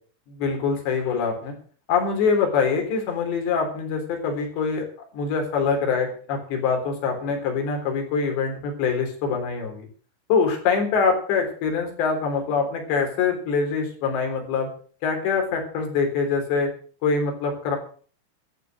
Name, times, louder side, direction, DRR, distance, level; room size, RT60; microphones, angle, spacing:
voice 1, 0.4-1.5 1.9-4.8 5.1-9.9 10.3-14.7 15.0-16.7 17.0-17.8, left 5 dB, 80° left, 3 dB, 5.8 m, -24 dB
14.0 x 8.5 x 7.8 m, 0.44 s
omnidirectional pair, 5.0 m